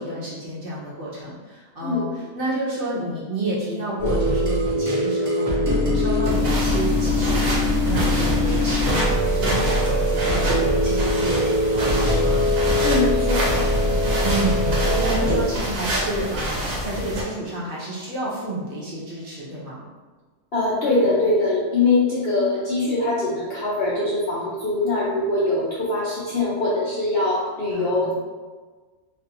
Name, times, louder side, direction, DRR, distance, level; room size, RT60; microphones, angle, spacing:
voice 1, 0.0-2.1 2.3-12.5 14.2-19.8 27.7-28.2, right 1 dB, 45° right, -7 dB, 0.8 m, -30 dB
sound 1, 4.0-15.4, left 1 dB, 20° right, 0.5 m, -22 dB
sound 2, 6.2-17.2, right 1 dB, 65° right, 1.1 m, -28 dB
voice 2, 12.8-13.6 20.5-28.2, left 2 dB, 60° left, -8 dB, 0.7 m, -22 dB
3.2 x 2.4 x 2.8 m, 1.4 s
omnidirectional pair, 1.5 m